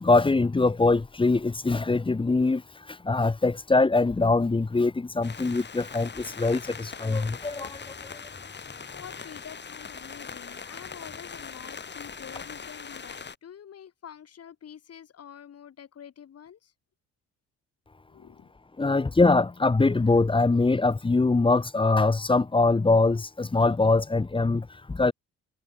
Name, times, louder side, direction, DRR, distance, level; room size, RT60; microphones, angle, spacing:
voice 1, 0.0-2.6 3.0-7.8 18.8-25.1, left 3 dB, 15° left, 1.0 m, -23 dB
sound 1, 5.2-13.3, left 5 dB, 35° left, 3.5 m, -41 dB
voice 2, 8.9-16.7 18.1-18.5, left 9 dB, 55° left, 4.6 m, -47 dB
supercardioid pair, 75°, 30 cm